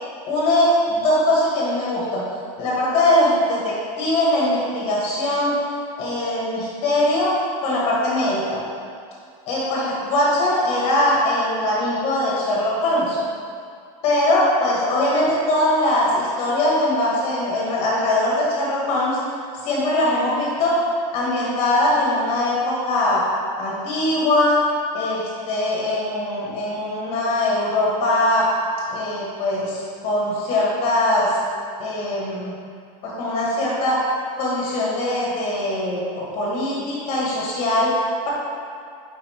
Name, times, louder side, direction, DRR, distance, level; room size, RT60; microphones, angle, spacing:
voice 1, 0.3-2.2 2.6-5.6 6.0-7.3 7.6-8.6 9.5-13.2 14.0-19.2 19.6-20.8 21.1-23.2 23.6-24.6 24.9-28.5 28.9-31.3 31.8-32.5 33.0-34.0 34.4-37.9, left 1 dB, 30° left, -5 dB, 1.6 m, -21 dB
5.7 x 5.4 x 4.4 m, 2.3 s
supercardioid pair, 180°, 19 cm